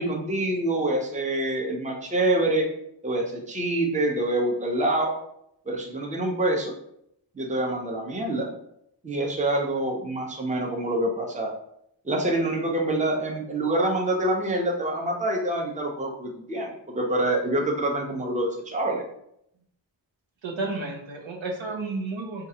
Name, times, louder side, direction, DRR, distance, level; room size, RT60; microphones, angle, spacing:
voice 1, 0.0-2.7 3.0-5.1 5.7-6.7 7.3-8.5 9.0-11.5 12.0-19.0, right 1 dB, 15° right, 0 dB, 0.6 m, -26 dB
voice 2, 20.4-22.5, right 3 dB, 85° right, 0 dB, 0.9 m, -32 dB
4.4 x 2.4 x 2.8 m, 0.74 s
wide cardioid pair, 85°, 46 cm